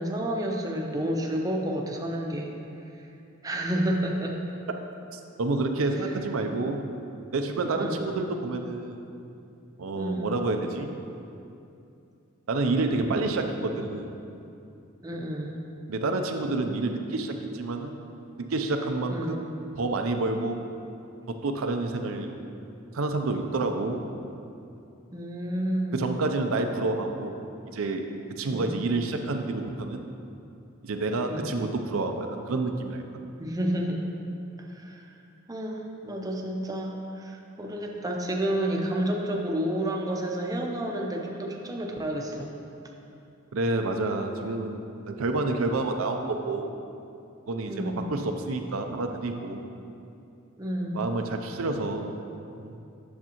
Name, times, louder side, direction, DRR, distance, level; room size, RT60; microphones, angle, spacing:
voice 1, 0.0-2.5 3.4-4.4 6.0-6.1 7.7-8.2 10.0-10.3 15.0-15.6 19.1-19.4 25.1-26.0 28.5-28.7 31.3-31.5 33.4-34.1 34.7-35.1 35.5-42.5 47.7-48.1 50.6-51.0, right 1 dB, 20° right, 0 dB, 0.6 m, -30 dB
voice 2, 5.1-6.8 7.3-9.0 9.8-10.9 12.5-14.1 15.9-18.0 18.4-19.5 19.8-20.6 21.3-22.3 22.9-24.0 25.9-27.3 27.7-28.0 28.3-30.0 30.8-33.0 43.5-46.7 47.5-49.6 50.9-52.1 52.6-52.8, right 2 dB, 85° right, 5 dB, 0.5 m, -29 dB
8.5 x 6.6 x 3.0 m, 2.7 s
head